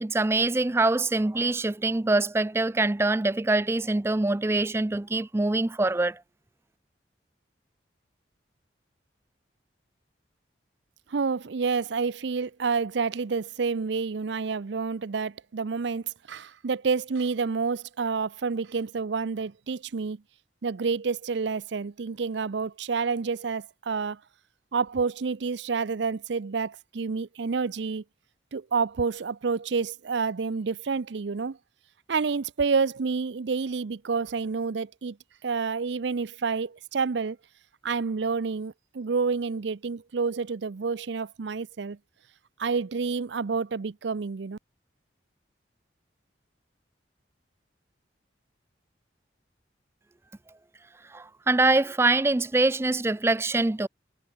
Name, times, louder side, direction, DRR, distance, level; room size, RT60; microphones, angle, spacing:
voice 1, 0.0-6.2 51.1-53.9, right 2 dB, 15° right, 0.3 m, -24 dB
voice 2, 11.1-20.2 20.6-24.2 24.7-28.0 28.5-31.6 32.1-35.2 35.4-37.4 37.8-42.0 42.6-44.6, right 5 dB, 70° right, 0.5 m, -29 dB
head